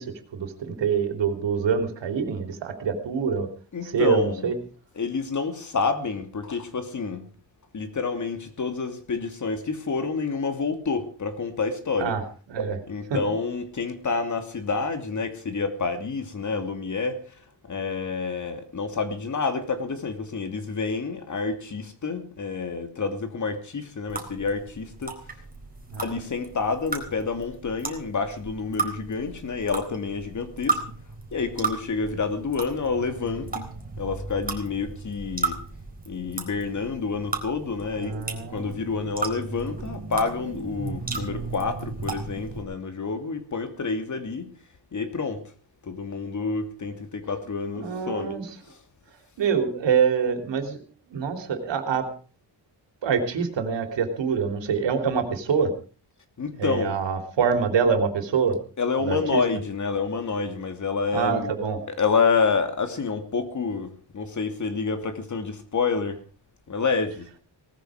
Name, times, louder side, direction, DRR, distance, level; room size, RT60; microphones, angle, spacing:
voice 1, 0.0-3.5 3.8-4.6 12.0-12.2 12.5-12.8 13.1-13.2 25.9-26.0 38.0-38.8 47.8-48.5 49.4-52.1 53.0-55.7 56.6-58.6 59.0-59.4 61.1-61.8, right 6 dB, 90° right, 3.3 m, -25 dB
voice 2, 3.7-4.4 5.0-7.3 7.7-12.1 12.9-17.3 17.6-25.2 26.0-30.8 31.3-33.6 34.0-35.6 36.1-38.2 38.5-44.5 44.9-45.4 45.8-48.4 48.7-48.8 56.4-57.0 58.8-61.5 61.9-66.2 66.7-67.3, left 4 dB, 45° left, 2.8 m, -28 dB
sound 1, 24.1-42.6, right 3 dB, 20° right, 4.1 m, -35 dB
19.0 x 14.0 x 5.0 m
wide cardioid pair, 140°, 42 cm